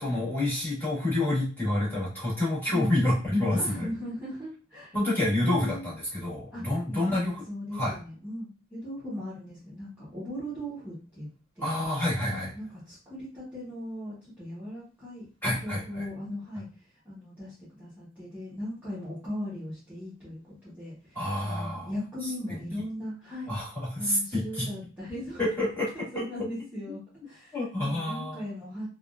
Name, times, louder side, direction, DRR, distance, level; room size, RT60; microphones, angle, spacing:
voice 1, 0.0-3.9 4.9-7.3 7.7-7.9 11.6-12.5 15.4-16.0 21.1-21.9 23.5-24.7 25.4-25.9 27.5-28.4, left 1 dB, 10° left, -9 dB, 1.7 m, -28 dB
voice 2, 2.7-3.1 3.5-5.0 5.4-5.9 6.5-6.7 6.9-11.3 11.5-11.8 12.2-23.6 24.0-25.4 25.9-27.0 27.3-28.9, equal, 10° right, -11 dB, 1.1 m, -38 dB
3.5 x 2.4 x 2.4 m, 0.37 s
head